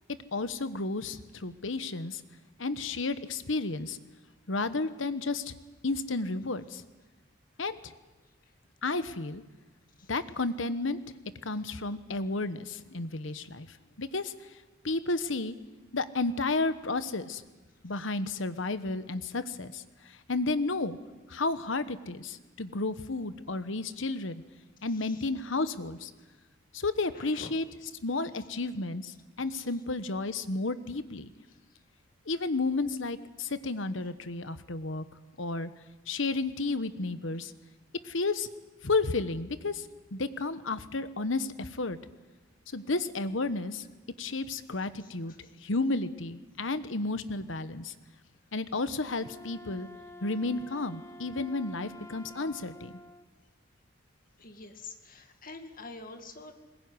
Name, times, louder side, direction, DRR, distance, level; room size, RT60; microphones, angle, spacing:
voice 1, 0.3-2.2 2.6-4.0 4.5-5.5 5.8-6.8 7.6-7.9 8.8-9.4 10.1-11.0 11.4-13.7 14.0-14.3 14.8-15.6 15.9-17.4 17.8-21.0 21.3-24.4 24.8-26.1 26.7-27.6 28.0-31.3 32.3-35.0 35.4-35.7 36.1-37.5 38.0-38.5 38.8-39.9 40.1-42.0 42.7-43.8 44.2-45.3 45.6-47.9 48.5-49.9 50.2-53.0, left 3 dB, 75° left, 12 dB, 1.2 m, -32 dB
voice 2, 27.1-27.5 54.4-56.5, left 3 dB, 45° left, 6 dB, 2.2 m, -45 dB
Wind instrument woodwind instrument, 49.1-53.3, left 1 dB, 15° left, 0.8 m, -49 dB
21.5 x 20.5 x 9.7 m, 1.2 s
head